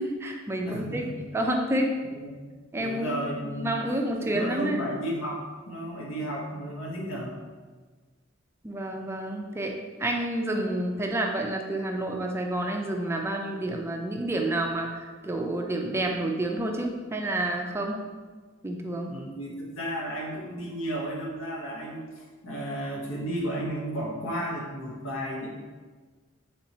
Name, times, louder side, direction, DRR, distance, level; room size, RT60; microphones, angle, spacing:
voice 1, 0.0-1.0 1.3-1.9 2.7-4.8 8.6-9.7 10.0-14.9 15.2-18.0 18.6-19.1, right 1 dB, 15° right, 1 dB, 0.3 m, -29 dB
voice 2, 0.6-1.2 2.1-2.5 2.8-3.7 4.2-7.4 19.1-25.5, equal, 85° left, -3 dB, 0.9 m, -33 dB
3.5 x 2.8 x 4.1 m, 1.4 s
head